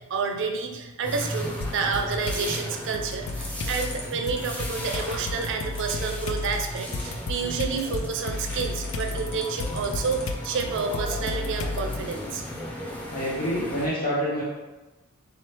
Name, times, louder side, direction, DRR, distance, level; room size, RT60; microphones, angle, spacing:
voice 1, 0.1-12.4, right 5 dB, 60° right, 4 dB, 0.4 m, -29 dB
sound 1, 1.0-13.9, equal, 5° left, 0.5 m, -36 dB
sound 2, 1.6-2.5 2.9-12.1, left 3 dB, 60° left, 0.4 m, -33 dB
sound 3, 3.3-10.4, left 2 dB, 80° left, 0.9 m, -43 dB
voice 2, 13.1-14.4, equal, 40° left, -7 dB, 0.7 m, -27 dB
3.9 x 3.0 x 3.2 m, 1.1 s
head